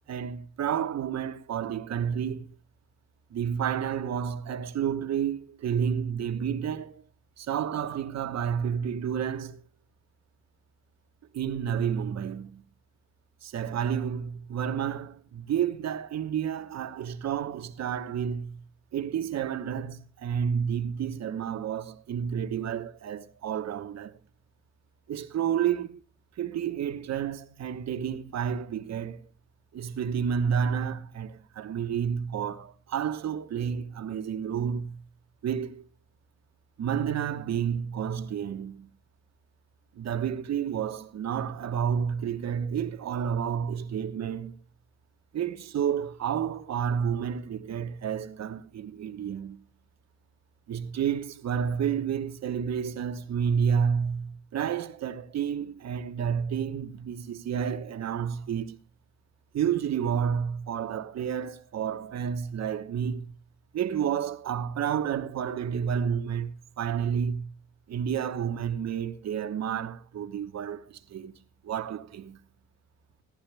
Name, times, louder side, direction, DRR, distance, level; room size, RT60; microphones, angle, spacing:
voice 1, 0.1-2.5 3.3-7.0 7.4-9.6 11.3-12.7 13.4-18.6 18.9-24.2 25.1-25.9 26.4-29.3 29.7-35.0 35.4-35.9 36.8-38.9 39.9-44.6 45.3-49.7 50.7-58.8 59.5-63.3 63.7-67.5 67.9-71.4 71.6-72.4, right 8 dB, 60° right, 1.2 m, -30 dB
16.5 x 11.5 x 3.3 m
cardioid pair, 90°, 30 cm